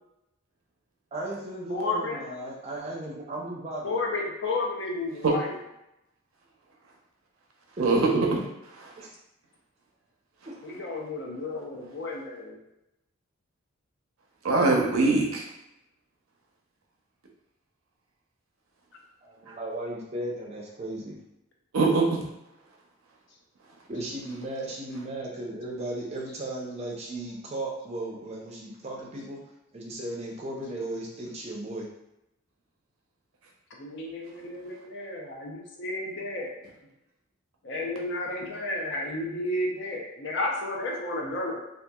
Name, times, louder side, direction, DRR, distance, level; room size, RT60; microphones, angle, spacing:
voice 1, 1.1-4.0 7.8-8.1 9.0-9.1 10.5-10.6 19.2-21.2 23.9-29.4 29.7-31.9, right 1 dB, 30° right, -3 dB, 0.5 m, -36 dB
voice 2, 1.7-2.2 3.8-5.6 10.6-12.6 33.8-36.6 37.6-41.6, left 2 dB, 55° left, 0 dB, 0.5 m, -32 dB
voice 3, 7.8-8.4 14.4-15.4 19.5-19.6 21.7-22.1, right 3 dB, 85° right, 0 dB, 0.6 m, -22 dB
2.8 x 2.4 x 2.2 m, 0.88 s
head